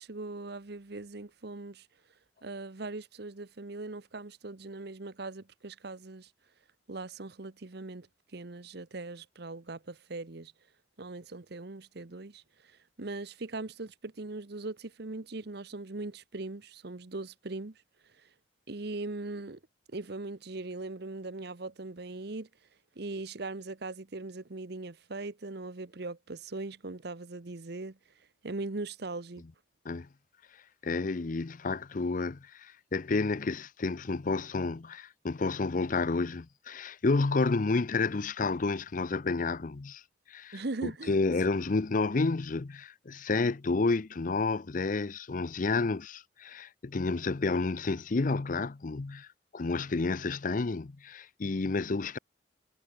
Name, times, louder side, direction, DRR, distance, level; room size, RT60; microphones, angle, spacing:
voice 1, 0.0-1.9 2.4-6.3 6.9-8.1 8.3-10.5 11.0-12.4 13.0-17.8 18.7-19.6 19.9-22.5 23.0-28.0 28.4-29.4 40.5-41.1, right 2 dB, 60° right, 1.0 m, -40 dB
voice 2, 30.8-40.0 40.3-49.3 49.5-52.2, left 3 dB, 45° left, 0.6 m, -30 dB
head